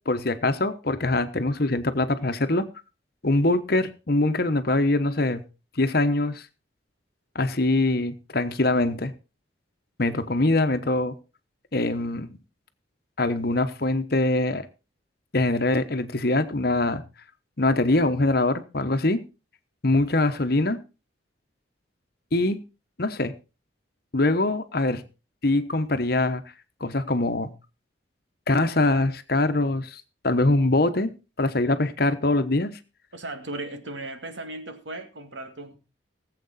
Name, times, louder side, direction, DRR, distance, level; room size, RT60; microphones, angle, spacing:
voice 1, 0.1-2.6 3.2-5.4 5.8-6.4 7.3-9.1 10.0-11.2 11.7-12.4 13.2-14.7 15.3-17.0 17.6-19.2 19.8-20.8 22.3-22.6 23.0-23.3 24.1-25.0 25.4-26.4 26.8-27.5 28.5-32.8, left 2 dB, 50° left, 9 dB, 1.1 m, -23 dB
voice 2, 33.1-35.8, right 2 dB, 75° right, 7 dB, 2.1 m, -36 dB
18.5 x 7.8 x 4.2 m, 0.31 s
head